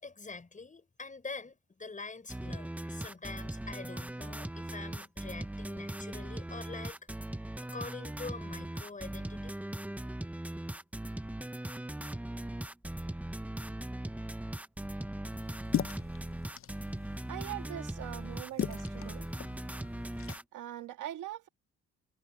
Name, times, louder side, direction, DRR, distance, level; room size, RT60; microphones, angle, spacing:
voice 1, 0.0-7.0 7.7-9.6, left 4 dB, 25° left, 6.2 m, -45 dB
sound 1, 2.3-20.4, right 1 dB, 5° right, 0.9 m, -39 dB
sound 2, 15.3-20.4, left 10 dB, 45° left, 0.6 m, -39 dB
voice 2, 17.3-19.3 20.5-21.5, right 13 dB, 80° right, 1.9 m, -42 dB
cardioid pair, 90°, 30 cm